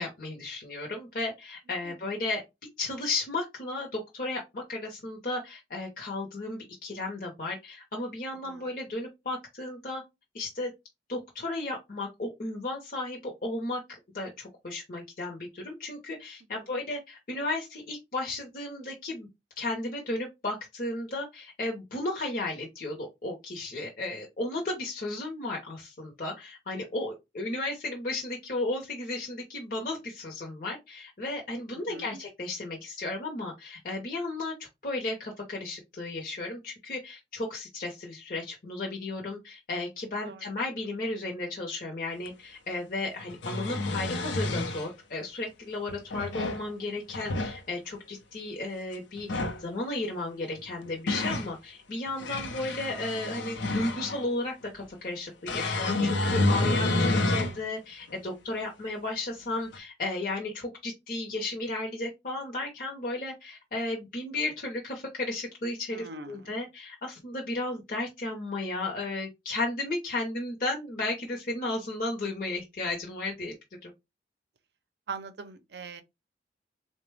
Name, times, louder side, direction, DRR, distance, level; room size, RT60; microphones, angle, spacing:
voice 1, 0.0-2.4 2.8-10.0 10.3-10.7 11.1-13.8 14.1-19.3 19.6-34.5 34.8-49.3 49.6-73.5 73.8-73.9, left 2 dB, 50° left, 0.7 m, -34 dB
voice 2, 8.4-8.8 16.5-16.8 31.7-32.2 40.2-40.5 57.2-57.6 65.9-66.5 75.1-76.0, right 4 dB, 65° right, 0.5 m, -43 dB
sound 1, 42.3-42.4 43.2-44.9 45.9-46.6 47.1-47.6 49.2-49.6 50.6-51.5 52.1-54.3 55.5-57.6 58.1-58.2 59.7-59.8, left 2 dB, 90° left, 0.6 m, -29 dB
3.9 x 2.1 x 3.2 m
head